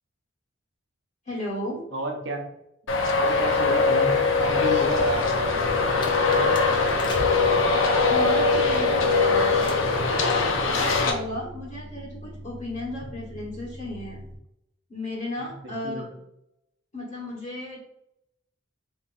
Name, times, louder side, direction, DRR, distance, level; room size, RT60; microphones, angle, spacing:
voice 1, 1.2-1.8 8.1-9.7 10.1-14.2 14.9-16.0 16.9-17.8, left 1 dB, 40° left, -6 dB, 1.3 m, -34 dB
voice 2, 1.9-2.5 3.2-5.2 5.8-6.6 15.4-16.2, right 2 dB, 70° right, 3 dB, 0.9 m, -31 dB
Traffic noise roadway noise, 2.9-11.1, left 4 dB, 90° left, 0.7 m, -22 dB
sound 1, 4.3-14.3, equal, 15° right, 0.5 m, -42 dB
sound 2, 5.9-9.0 9.6-10.0 10.3-10.7 11.0-11.2, equal, 25° left, 0.7 m, -40 dB
4.2 x 3.8 x 2.5 m, 0.79 s
head